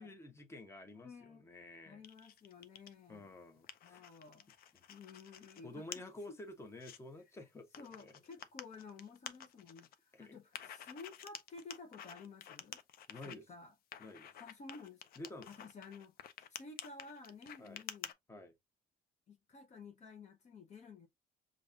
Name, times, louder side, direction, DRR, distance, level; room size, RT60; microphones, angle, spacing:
voice 1, 0.0-2.0 3.1-4.0 4.7-4.8 5.6-8.1 10.1-10.4 13.1-13.5 14.0-14.4 15.2-15.6 17.6-17.8 18.3-18.5, left 2 dB, 15° left, 1.0 m, -51 dB
voice 2, 1.0-1.4 1.8-3.3 3.8-4.5 4.9-6.0 6.3-6.4 7.8-12.8 13.2-13.7 14.4-15.2 15.5-16.2 16.5-18.1 19.3-21.1, left 4 dB, 45° left, 0.9 m, -53 dB
sound 1, 2.0-2.9 3.4-5.6 5.9-6.0 6.5-7.0 7.7-9.9 10.5-13.3 13.9-18.1, left 9 dB, 60° left, 0.6 m, -50 dB
5.2 x 2.5 x 2.5 m
cardioid pair, 110°, 17 cm